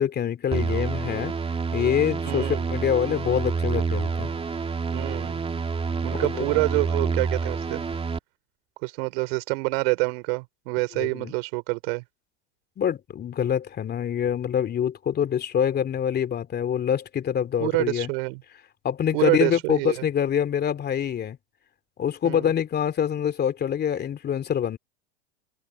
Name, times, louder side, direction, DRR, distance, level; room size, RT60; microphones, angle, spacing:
voice 1, 0.0-1.4 1.7-4.3 6.1-6.6 11.0-11.3 12.8-18.1 18.8-21.4 22.0-24.8, left 8 dB, 30° left, 2.7 m, -25 dB
sound 1, 0.5-8.2, right 5 dB, 15° right, 2.8 m, -28 dB
voice 2, 2.2-2.7 4.9-5.4 6.0-7.8 8.8-12.0 17.6-18.4 19.1-20.0 22.2-22.5, right 29 dB, 60° right, 4.5 m, -27 dB
hypercardioid pair, 100°, 33 cm